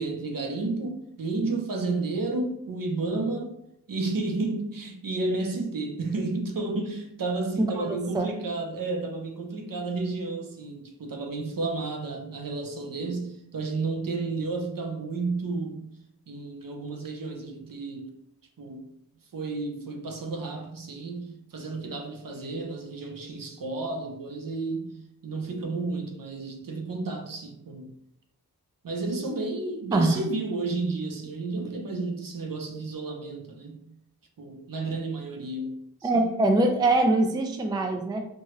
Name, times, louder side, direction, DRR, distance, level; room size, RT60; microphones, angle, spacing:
voice 1, 0.0-3.5 3.9-15.8 16.3-18.1 18.6-18.9 19.3-25.0 25.2-27.9 28.8-33.9 34.4-36.6, right 3 dB, 60° right, 0.6 m, -32 dB
voice 2, 7.7-8.3 29.9-30.2 36.0-38.3, right 2 dB, 10° right, 0.3 m, -23 dB
3.1 x 2.2 x 2.8 m
wide cardioid pair, 55°, 38 cm